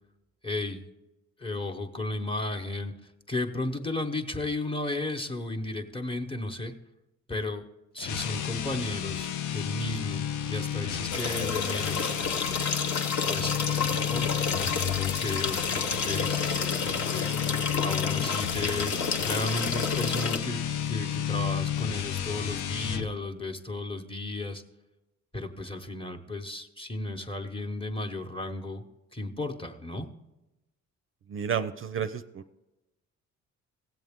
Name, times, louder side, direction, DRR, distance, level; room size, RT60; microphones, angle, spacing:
voice 1, 0.4-0.8 1.4-6.7 7.3-7.6 7.9-10.2 10.5-12.1 13.3-17.5 17.8-20.6 20.9-24.6 25.3-28.8 29.1-30.1, left 2 dB, 15° left, 4 dB, 1.0 m, -34 dB
sound 1, 8.0-23.1, left 10 dB, 90° left, 0.6 m, -32 dB
sound 2, 11.1-20.4, left 5 dB, 70° left, 1.0 m, -30 dB
voice 2, 31.3-32.6, right 7 dB, 45° right, 11 dB, 0.5 m, -32 dB
16.0 x 7.7 x 3.6 m, 1.0 s
cardioid pair, 90°, 30 cm